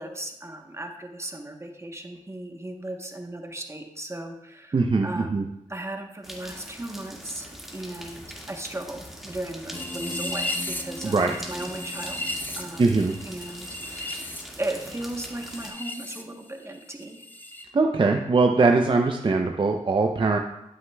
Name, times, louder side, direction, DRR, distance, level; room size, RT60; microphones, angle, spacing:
voice 1, 0.0-17.2, right 1 dB, 20° right, 3 dB, 1.0 m, -37 dB
voice 2, 4.7-5.4 11.0-11.3 12.8-13.1 17.7-20.4, right 3 dB, 40° right, 3 dB, 0.6 m, -21 dB
sound 1, 6.2-15.7, equal, ahead, 1.9 m, -42 dB
sound 2, 9.7-16.2 16.5-17.6, left 1 dB, 15° left, 0.9 m, -35 dB
11.5 x 6.4 x 2.3 m, 0.87 s
cardioid pair, 60°, 13 cm